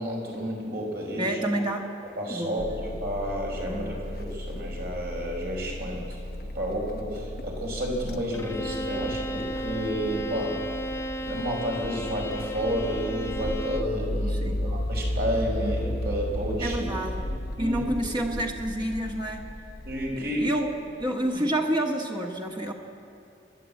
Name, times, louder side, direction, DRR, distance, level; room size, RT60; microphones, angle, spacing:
voice 1, 0.0-1.4 2.2-6.2 6.5-10.6 11.3-16.8 17.2-17.3 17.6-17.8 18.3-18.4 19.8-20.5, equal, 60° right, -1 dB, 5.1 m, -31 dB
voice 2, 1.2-1.9 2.3-2.6 3.7-3.9 14.4-14.6 16.6-17.3 17.6-19.5 20.2-20.7 21.0-22.7, right 1 dB, 25° right, 1 dB, 1.5 m, -29 dB
sound 1, 2.6-21.1, left 1 dB, 60° left, 1.0 m, -35 dB
Bowed string instrument, 8.3-14.0, equal, 15° left, 0.7 m, -34 dB
29.0 x 11.0 x 8.5 m, 2.5 s
head